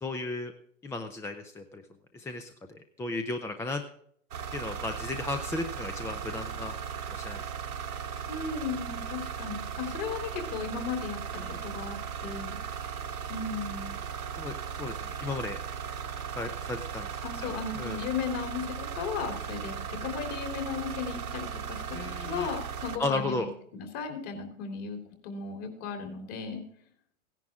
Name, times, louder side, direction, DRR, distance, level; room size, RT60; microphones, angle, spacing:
voice 1, 0.0-0.5 0.8-1.8 2.1-2.5 3.0-3.8 4.5-6.8 7.2-7.4 11.4-11.6 14.4-14.5 14.8-15.6 16.4-17.1 17.4-18.0 21.9-22.5 23.0-23.5, left 2 dB, 5° left, 7 dB, 0.5 m, -34 dB
sound 1, 4.3-23.0, right 7 dB, 85° right, 1.7 m, -37 dB
voice 2, 8.3-11.2 11.4-12.6 13.3-14.0 17.2-18.7 18.9-23.5 23.7-25.0 25.2-26.6, left 5 dB, 40° left, 5 dB, 3.3 m, -36 dB
16.5 x 10.5 x 3.6 m, 0.64 s
hypercardioid pair, 120°, 43 cm